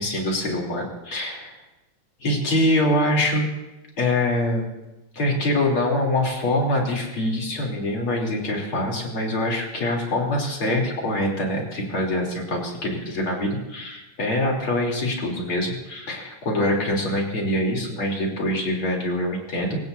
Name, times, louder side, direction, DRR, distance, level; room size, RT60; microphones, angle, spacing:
voice 1, 0.0-1.6 2.2-3.4 4.0-4.7 5.1-19.8, left 1 dB, 80° left, -1 dB, 4.4 m, -24 dB
24.5 x 19.0 x 2.7 m, 1.0 s
omnidirectional pair, 2.3 m